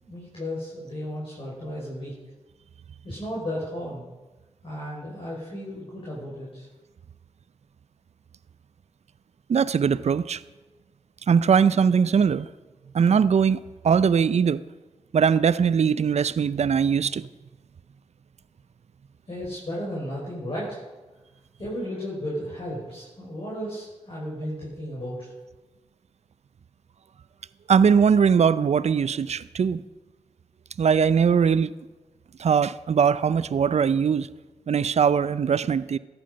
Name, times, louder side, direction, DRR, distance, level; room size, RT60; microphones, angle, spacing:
voice 1, 0.0-2.1 3.0-4.0 4.6-6.7 19.3-20.8 21.6-25.3, equal, 50° left, 5.5 m, -34 dB
voice 2, 9.5-10.4 11.3-12.5 12.9-13.6 13.8-14.6 15.1-17.3 27.7-29.8 30.8-31.7 32.4-34.3 34.7-36.0, right 6 dB, 60° right, 0.5 m, -21 dB
14.0 x 10.5 x 5.3 m
cardioid pair, 45°, 12 cm